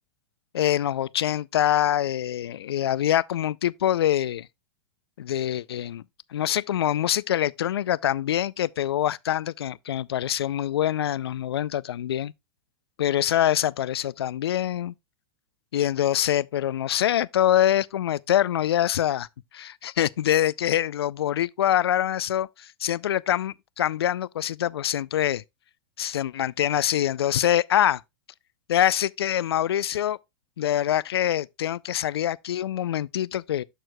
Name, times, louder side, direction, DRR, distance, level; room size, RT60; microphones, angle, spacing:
voice 1, 0.5-4.5 5.2-6.0 6.3-12.3 13.0-14.9 15.7-19.3 19.5-25.4 26.0-28.0 28.7-30.2 30.6-33.6, left 11 dB, 85° left, 0.4 m, -25 dB
13.0 x 4.5 x 2.2 m
hypercardioid pair, 105°, 13 cm